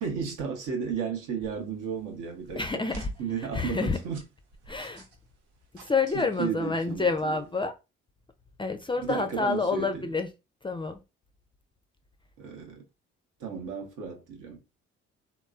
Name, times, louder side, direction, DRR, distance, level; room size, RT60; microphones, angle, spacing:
voice 1, 0.0-2.8 3.2-4.2 6.1-7.4 9.0-10.1 12.4-12.8 13.4-14.6, right 6 dB, 70° right, 0.9 m, -34 dB
sound 1, 1.4-7.6, right 3 dB, 90° right, 0.6 m, -51 dB
voice 2, 2.6-3.1 3.4-4.0 4.7-5.0 5.7-7.7 8.6-10.3 10.6-11.0, left 4 dB, 15° left, 0.4 m, -28 dB
3.0 x 2.0 x 2.3 m
hypercardioid pair, 45°, 33 cm